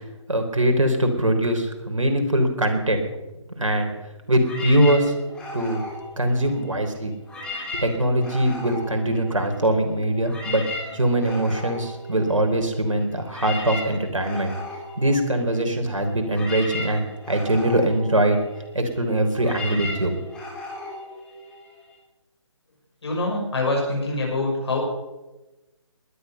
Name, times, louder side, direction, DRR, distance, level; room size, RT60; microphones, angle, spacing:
voice 1, 0.3-3.0 3.6-3.9 4.3-5.1 5.5-5.8 6.2-7.1 7.7-10.6 10.9-14.5 15.0-18.4 18.7-20.1, right 1 dB, 80° right, 4 dB, 3.7 m, -22 dB
sound 1, 4.4-6.8 7.2-9.7 10.0-22.0, left 2 dB, 5° left, 3.9 m, -36 dB
voice 2, 23.0-24.8, left 2 dB, 55° left, 0 dB, 5.9 m, -25 dB
20.0 x 11.5 x 5.8 m, 1.0 s
figure-of-eight pair, 150°, 16 cm